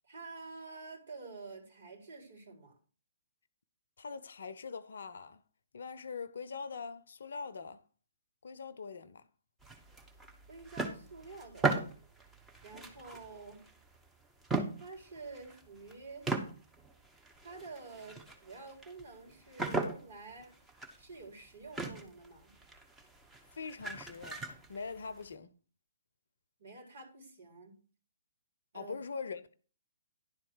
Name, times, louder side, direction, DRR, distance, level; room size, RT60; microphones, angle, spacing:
voice 1, 0.1-2.7 10.5-11.9 12.6-13.7 14.8-16.3 17.4-20.5 21.0-22.6 26.6-27.8 28.7-29.0, right 3 dB, 55° right, 4.1 m, -49 dB
voice 2, 4.0-5.4 5.7-7.8 8.4-9.3 23.5-25.5 28.7-29.5, left 5 dB, 60° left, 0.7 m, -43 dB
sound 1, 9.6-14.1 14.4-15.9 16.2-25.3, right 3 dB, 10° right, 1.2 m, -39 dB
11.0 x 4.4 x 6.4 m
figure-of-eight pair, 125°, 0 cm